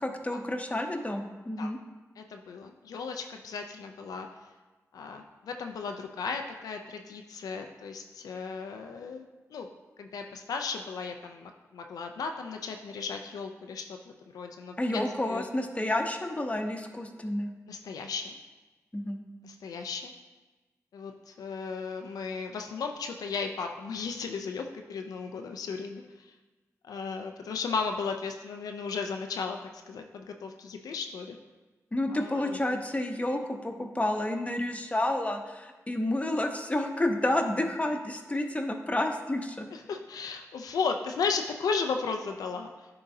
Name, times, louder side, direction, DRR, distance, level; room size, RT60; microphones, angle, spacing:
voice 1, 0.0-1.8 14.8-17.5 18.9-19.2 31.9-39.7, left 1 dB, 20° left, 3 dB, 0.8 m, -30 dB
voice 2, 2.2-4.3 4.9-9.7 10.0-13.8 14.3-15.0 15.3-15.4 17.7-18.4 19.4-20.1 20.9-26.3 26.8-29.6 29.9-31.4 32.1-32.8 39.7-42.9, left 5 dB, 85° left, 4 dB, 0.4 m, -35 dB
9.8 x 3.8 x 2.7 m, 1.2 s
cardioid pair, 45°, 6 cm